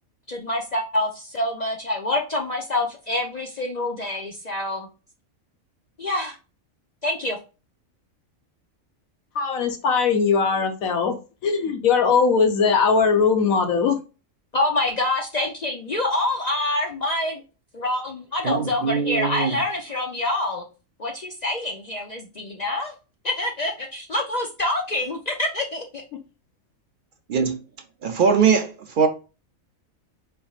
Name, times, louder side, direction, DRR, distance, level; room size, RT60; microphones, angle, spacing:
voice 1, 0.3-4.9 6.0-6.4 7.0-7.4 14.5-17.4 17.7-20.6 21.0-22.9 23.2-26.0, left 1 dB, 55° left, 0.4 m, -26 dB
voice 2, 9.3-11.1 11.4-14.0, left 5 dB, 80° left, 1.3 m, -20 dB
voice 3, 18.4-19.6 27.3-27.6 28.0-29.1, right 6 dB, 65° right, 0.5 m, -21 dB
4.0 x 3.4 x 2.3 m
omnidirectional pair, 1.4 m